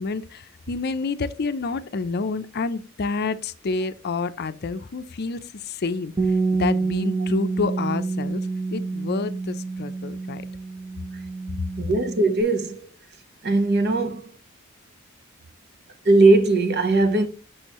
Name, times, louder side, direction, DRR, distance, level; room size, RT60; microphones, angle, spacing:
voice 1, 0.0-8.4 8.7-10.4 11.6-11.7, left 4 dB, 50° left, 0.5 m, -29 dB
Bass guitar, 6.2-12.4, right 3 dB, 25° right, 0.7 m, -27 dB
voice 2, 11.8-12.8 13.4-14.3 16.0-17.3, right 2 dB, 55° right, 0.9 m, -19 dB
6.3 x 6.2 x 3.0 m
head